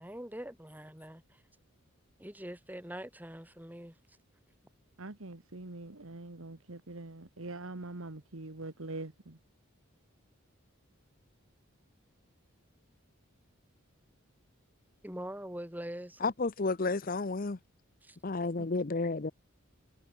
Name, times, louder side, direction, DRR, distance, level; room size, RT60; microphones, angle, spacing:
voice 1, 0.0-1.4 2.2-4.2 15.0-16.2 18.0-18.2, equal, 10° right, 2.4 m, -43 dB
voice 2, 5.0-9.4, right 2 dB, 75° right, 1.6 m, -43 dB
voice 3, 16.2-17.6 18.2-19.3, left 3 dB, 40° left, 0.7 m, -31 dB
head